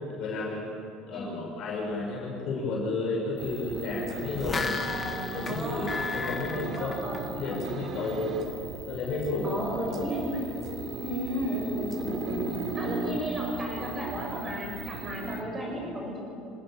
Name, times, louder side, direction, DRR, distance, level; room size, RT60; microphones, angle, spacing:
voice 1, 0.1-4.8 5.3-6.9 7.3-8.4 8.9-9.9, left 3 dB, 50° left, -2 dB, 5.9 m, -32 dB
voice 2, 1.1-1.5 4.8-7.6 9.4-10.6 10.9-16.2, equal, 15° right, 0 dB, 7.7 m, -34 dB
sound 1, 3.4-15.4, right 3 dB, 45° right, 2.7 m, -37 dB
sound 2, 4.2-7.7 8.0-8.1, left 4 dB, 20° left, 1.7 m, -34 dB
27.5 x 18.5 x 9.0 m, 2.7 s
cardioid pair, 150°, 0 cm